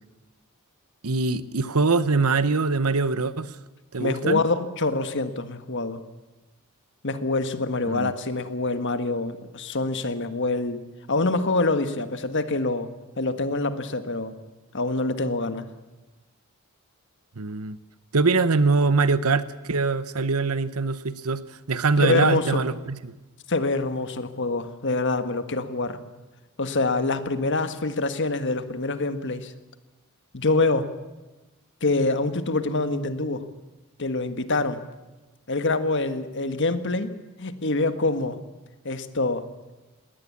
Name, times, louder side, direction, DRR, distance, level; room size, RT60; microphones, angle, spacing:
voice 1, 1.0-3.6 3.9-4.4 7.9-8.1 17.4-17.8 18.1-21.4 21.7-23.1, right 4 dB, 75° right, 14 dB, 1.0 m, -23 dB
voice 2, 4.0-6.0 7.0-14.3 14.7-15.7 22.0-22.6 23.5-26.0 26.6-29.5 30.3-30.9 31.8-33.4 34.0-34.8 35.5-37.1 37.4-38.4 38.8-39.5, left 3 dB, 55° left, 10 dB, 1.6 m, -25 dB
20.5 x 18.0 x 8.6 m, 1.1 s
head